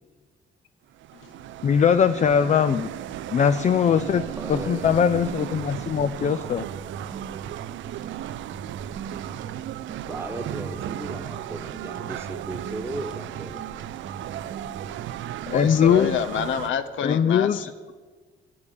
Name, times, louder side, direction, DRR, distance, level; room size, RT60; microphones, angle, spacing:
sound 1, 0.9-16.7, right 13 dB, 75° right, 0.4 m, -36 dB
voice 1, 1.6-2.9 3.3-6.7 15.5-16.2 17.0-17.7, left 7 dB, 40° left, 11 dB, 0.4 m, -21 dB
sound 2, 3.9-16.7, right 6 dB, 40° right, 0.7 m, -40 dB
voice 2, 4.4-5.0 10.1-13.6, right 2 dB, 10° right, 6 dB, 1.2 m, -36 dB
voice 3, 15.5-17.9, left 8 dB, 75° left, 10 dB, 0.8 m, -28 dB
8.6 x 8.2 x 8.6 m, 1.4 s
cardioid pair, 90°, 20 cm